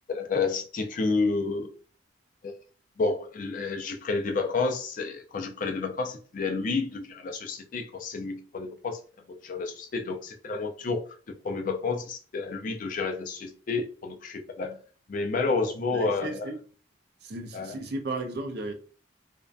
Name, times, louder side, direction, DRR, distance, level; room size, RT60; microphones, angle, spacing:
voice 1, 0.1-1.7 2.4-2.5 3.0-9.0 9.4-11.0 11.4-14.8 15.1-16.5 17.5-17.7, left 4 dB, 40° left, 0.3 m, -30 dB
voice 2, 15.9-16.6 17.2-18.7, right 2 dB, 55° right, 0.4 m, -35 dB
2.5 x 2.1 x 2.3 m
head